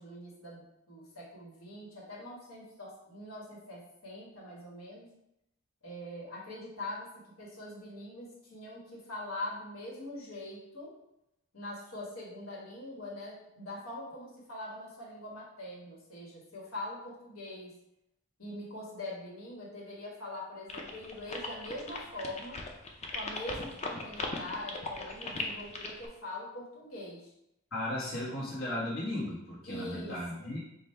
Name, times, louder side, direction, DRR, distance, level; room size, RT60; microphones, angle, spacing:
voice 1, 0.0-5.1 5.8-7.1 7.4-10.9 11.5-17.7 18.4-22.6 23.1-27.3 29.7-30.6, left 1 dB, 85° left, -4 dB, 1.4 m, -43 dB
sound 1, 20.7-26.1, left 3 dB, 35° left, 0.6 m, -38 dB
voice 2, 27.7-30.6, left 1 dB, 70° left, -8 dB, 1.2 m, -36 dB
5.2 x 2.3 x 4.3 m, 0.83 s
head